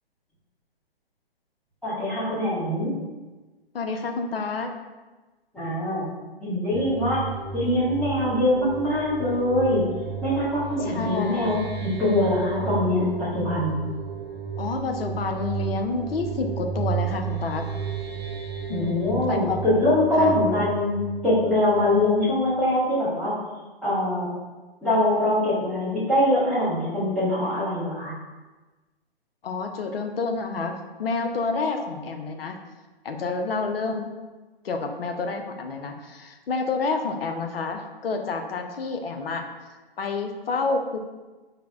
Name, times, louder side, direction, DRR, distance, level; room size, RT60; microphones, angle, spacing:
voice 1, 1.8-2.9 5.5-6.1 6.4-7.2 7.5-9.9 10.2-13.8 18.7-21.0 21.2-23.4 23.8-24.3 24.8-28.1, left 1 dB, 5° left, -13 dB, 0.6 m, -23 dB
voice 2, 3.7-4.7 10.8-11.6 14.6-17.7 18.7-19.6 20.2-20.4 29.4-32.6 33.0-34.1 34.6-39.4 40.0-41.0, left 4 dB, 70° left, 5 dB, 0.5 m, -29 dB
sound 1, 6.7-22.2, right 7 dB, 75° right, 0.8 m, -33 dB
4.7 x 2.0 x 2.3 m, 1.2 s
figure-of-eight pair, 130°, 31 cm